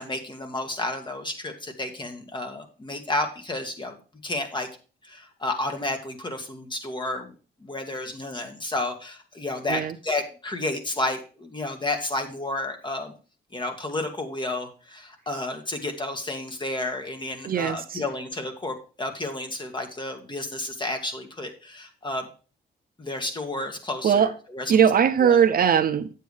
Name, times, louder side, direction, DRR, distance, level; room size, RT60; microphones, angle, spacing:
voice 1, 0.0-4.0 4.2-4.7 5.0-7.3 7.6-13.1 13.5-22.3 23.0-24.8 25.2-25.4, left 2 dB, 25° left, 2.0 m, -31 dB
voice 2, 17.4-18.0 24.0-24.3 24.7-26.1, right 8 dB, 50° right, 0.6 m, -20 dB
9.1 x 7.7 x 3.5 m
cardioid pair, 90°, 20 cm